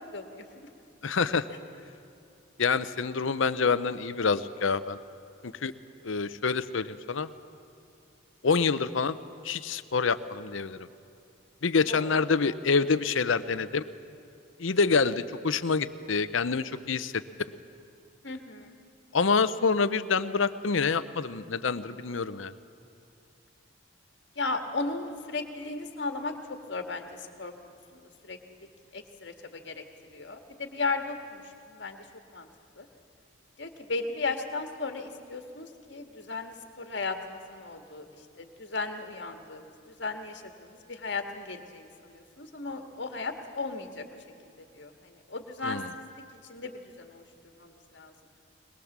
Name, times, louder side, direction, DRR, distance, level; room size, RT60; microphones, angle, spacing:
voice 1, 0.1-0.7 11.9-12.1 18.2-18.8 24.4-28.4 28.9-29.8 30.1-32.0 32.3-32.5 32.8-32.9 33.6-38.1 38.4-39.7 40.0-44.1 44.7-46.1 46.5-47.2 47.6-48.1, left 3 dB, 60° left, 5 dB, 1.8 m, -36 dB
voice 2, 1.0-1.5 2.6-5.0 5.4-5.7 6.0-7.3 8.4-9.2 9.4-10.9 11.6-13.8 14.6-17.2 19.1-22.5 45.6-45.8, left 5 dB, 75° left, 13 dB, 0.7 m, -27 dB
21.5 x 21.5 x 7.3 m, 2.6 s
head